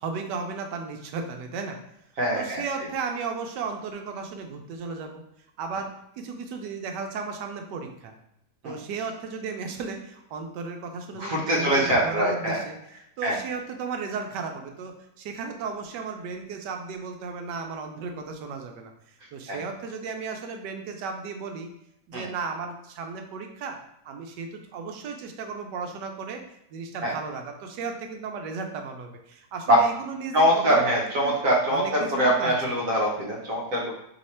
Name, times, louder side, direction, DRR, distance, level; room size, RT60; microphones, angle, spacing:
voice 1, 0.0-1.8 2.3-5.2 5.6-8.1 8.6-12.8 13.2-21.7 22.1-23.8 24.0-26.4 26.7-31.3 31.7-32.8, right 5 dB, 85° right, 4 dB, 1.2 m, -35 dB
voice 2, 2.2-2.6 8.6-8.7 11.2-12.6 13.2-13.4 19.5-19.6 22.1-22.3 27.0-27.1 29.7-29.8 30.3-33.9, equal, 55° right, -2 dB, 1.2 m, -23 dB
3.2 x 3.1 x 4.2 m, 0.80 s
omnidirectional pair, 1.8 m